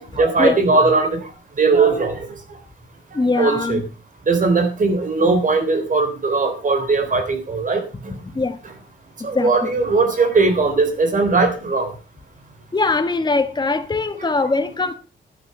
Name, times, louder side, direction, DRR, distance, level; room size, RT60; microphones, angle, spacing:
voice 1, 0.2-1.2 1.6-2.3 3.3-3.8 4.3-7.8 9.2-11.9, right 3 dB, 40° right, 7 dB, 3.7 m, -18 dB
voice 2, 3.1-3.8 8.3-8.6 9.3-9.7 12.7-14.9, left 3 dB, 20° left, 8 dB, 1.4 m, -21 dB
11.5 x 11.5 x 5.4 m, 0.34 s
wide cardioid pair, 140°, 20 cm